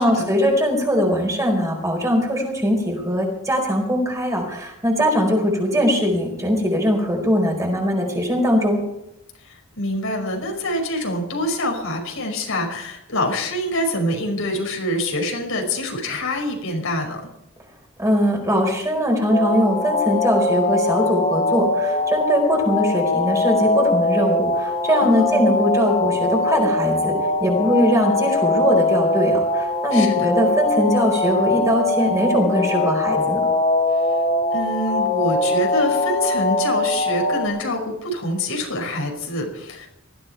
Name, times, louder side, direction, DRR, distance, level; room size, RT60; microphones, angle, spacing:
voice 1, 0.0-8.8 18.0-33.4, equal, 15° right, 1 dB, 4.7 m, -21 dB
voice 2, 9.4-17.3 25.0-25.5 29.9-30.3 34.5-39.9, left 1 dB, 80° left, 1 dB, 5.5 m, -26 dB
sound 1, 19.3-37.5, left 2 dB, 40° left, 2.8 m, -21 dB
19.5 x 14.5 x 4.6 m, 0.84 s
head